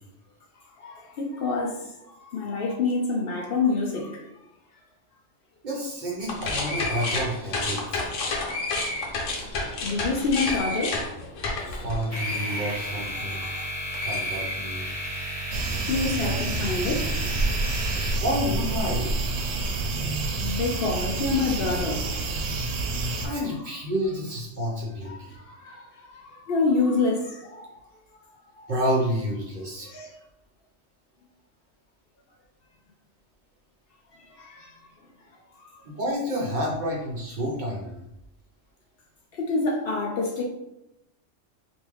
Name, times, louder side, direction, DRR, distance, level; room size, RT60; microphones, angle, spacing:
voice 1, 0.8-1.9 2.2-4.3 8.7-8.8 9.8-11.2 11.6-11.8 13.3-13.6 15.5-15.6 15.9-17.1 19.5-22.1 25.0-27.8 28.1-28.2 28.5-28.7 29.8-30.2 34.2-34.7 35.6-35.8 39.3-40.4, left 3 dB, 60° left, 0.7 m, -28 dB
voice 2, 5.6-7.8 11.8-13.4 14.0-14.9 18.2-19.1 23.2-25.4 28.7-29.9 35.8-38.0, equal, 50° right, 0.7 m, -29 dB
sound 1, 6.2-13.6 13.9-15.1, left 2 dB, 85° left, 1.1 m, -30 dB
sound 2, 12.1-18.9, right 1 dB, 10° right, 1.5 m, -34 dB
sound 3, 15.5-23.3, right 2 dB, 80° right, 0.9 m, -28 dB
3.5 x 2.6 x 3.0 m
omnidirectional pair, 1.2 m